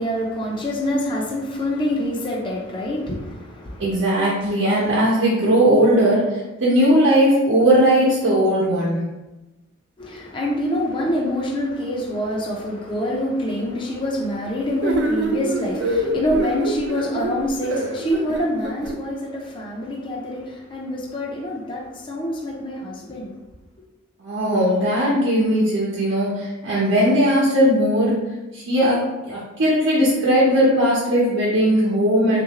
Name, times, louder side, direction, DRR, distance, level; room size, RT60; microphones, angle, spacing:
voice 1, 0.0-3.9 10.0-23.4, left 1 dB, 25° left, -2 dB, 0.5 m, -26 dB
voice 2, 3.8-9.0 24.2-28.2 28.5-32.4, equal, 90° right, -8 dB, 0.8 m, -18 dB
sound 1, 14.8-19.0, right 1 dB, 65° right, 0.4 m, -25 dB
3.2 x 2.5 x 2.9 m, 1.1 s
head